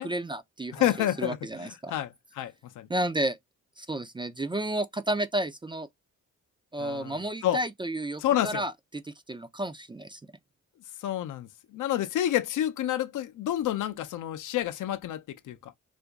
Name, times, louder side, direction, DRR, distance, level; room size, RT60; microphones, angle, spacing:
voice 1, 0.0-1.9 2.9-3.4 3.8-5.9 6.7-8.7 9.1-10.2, right 1 dB, 15° right, 0.4 m, -32 dB
voice 2, 0.7-2.9 6.8-7.2 7.4-7.6 8.2-8.6 11.0-15.7, left 12 dB, 70° left, 0.6 m, -29 dB
2.8 x 2.5 x 3.4 m
cardioid pair, 75°, 32 cm